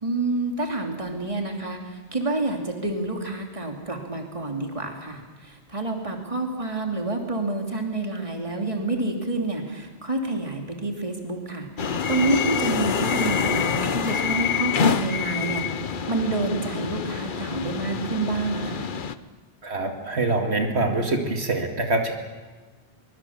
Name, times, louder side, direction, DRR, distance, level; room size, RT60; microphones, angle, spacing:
voice 1, 0.0-18.9, right 2 dB, 30° right, 2 dB, 2.9 m, -28 dB
sound 1, 11.8-19.1, left 7 dB, 55° left, 1.0 m, -26 dB
voice 2, 19.6-22.1, right 2 dB, 85° right, 3 dB, 2.5 m, -24 dB
23.0 x 22.5 x 7.3 m, 1.3 s
omnidirectional pair, 1.1 m